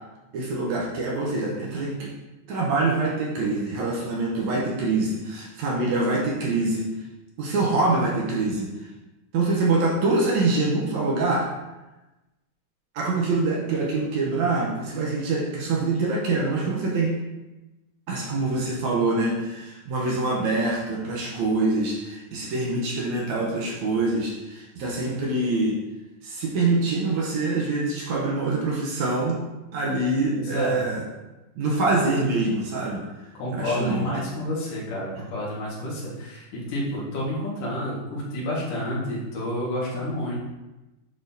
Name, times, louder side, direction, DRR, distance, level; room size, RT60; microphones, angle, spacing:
voice 1, 0.3-2.1 2.5-6.9 7.4-8.7 9.3-11.5 12.9-17.2 18.1-25.8 26.2-29.4 29.7-31.0 31.6-33.1 33.5-34.1, right 3 dB, 70° right, -3 dB, 2.0 m, -25 dB
voice 2, 30.3-30.8 33.3-40.4, left 1 dB, 75° left, -6 dB, 3.2 m, -29 dB
9.8 x 4.2 x 2.7 m, 1.0 s
omnidirectional pair, 3.8 m